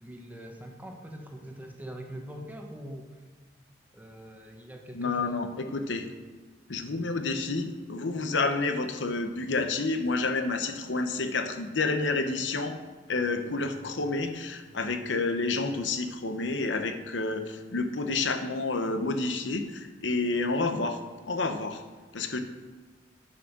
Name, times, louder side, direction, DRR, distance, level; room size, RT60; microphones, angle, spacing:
voice 1, 0.0-3.1 3.9-5.4, equal, 10° right, 2 dB, 1.1 m, -43 dB
voice 2, 4.9-6.1 6.7-12.8 13.1-21.0 21.3-21.8 22.1-22.4, left 3 dB, 80° left, 7 dB, 0.9 m, -29 dB
9.9 x 6.2 x 6.0 m, 1.4 s
head